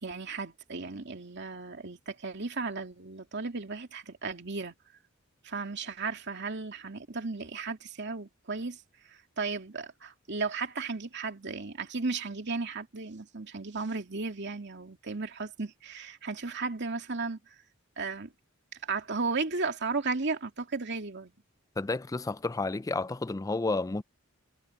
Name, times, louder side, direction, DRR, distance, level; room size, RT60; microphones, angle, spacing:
voice 1, 0.0-4.7 5.4-8.8 9.1-17.4 18.0-18.3 18.8-21.3, right 4 dB, 55° right, 2.5 m, -35 dB
voice 2, 21.8-24.0, left 3 dB, 15° left, 0.4 m, -31 dB
head